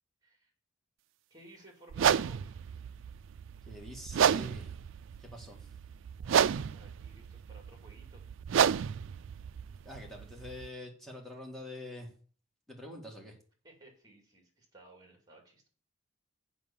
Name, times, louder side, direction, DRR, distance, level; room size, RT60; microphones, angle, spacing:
voice 1, 1.3-2.7 6.2-8.2 13.6-15.7, right 1 dB, 20° right, 2 dB, 2.6 m, -57 dB
sound 1, 1.9-10.7, right 8 dB, 75° right, 0.3 m, -31 dB
voice 2, 3.7-4.7 5.2-5.7 9.9-12.1 12.7-13.4, left 1 dB, ahead, -1 dB, 1.9 m, -45 dB
7.5 x 5.6 x 7.0 m, 0.42 s
head